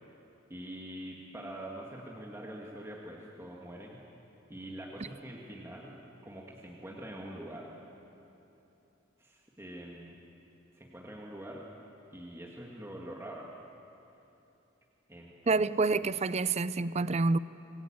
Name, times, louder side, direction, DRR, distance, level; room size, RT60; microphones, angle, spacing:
voice 1, 0.5-4.0 4.5-5.9 6.2-7.7 9.2-10.2 10.7-11.6 12.1-13.5 15.1-15.6 15.9-16.0, right 1 dB, 15° right, 2.1 m, -44 dB
voice 2, 15.5-17.4, right 3 dB, 35° right, 0.5 m, -27 dB
26.5 x 20.0 x 8.9 m
head